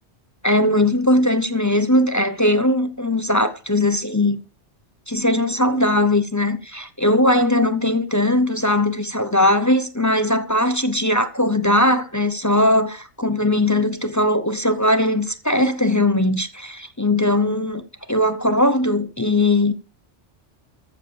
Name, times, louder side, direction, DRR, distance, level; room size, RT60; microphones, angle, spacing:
voice 1, 0.4-4.4 5.1-17.8 18.1-19.7, left 1 dB, 20° left, 0.6 m, -19 dB
14.0 x 4.9 x 6.9 m
omnidirectional pair, 1.2 m